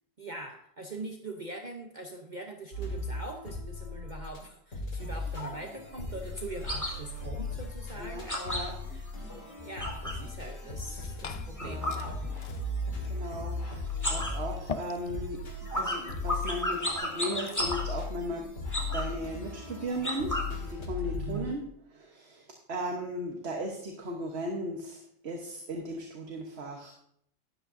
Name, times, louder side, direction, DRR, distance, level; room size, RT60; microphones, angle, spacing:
voice 1, 0.2-9.1 9.6-12.5 21.0-21.7, right 2 dB, 40° right, 3 dB, 1.0 m, -42 dB
sound 1, 2.7-4.4 4.7-21.4, left 3 dB, 90° left, 2.3 m, -38 dB
sound 2, 5.0-10.3 10.6-12.8 13.0-13.6 13.9-20.7, left 1 dB, 15° left, 2.3 m, -36 dB
voice 2, 8.0-8.7 11.6-12.0 13.1-15.4 15.7-18.5 18.9-21.6 22.0-26.9, equal, 55° right, 2 dB, 1.4 m, -37 dB
Liquid, 10.7-17.8, left 6 dB, 65° left, 0.3 m, -46 dB
12.5 x 11.0 x 2.7 m, 0.68 s
omnidirectional pair, 1.3 m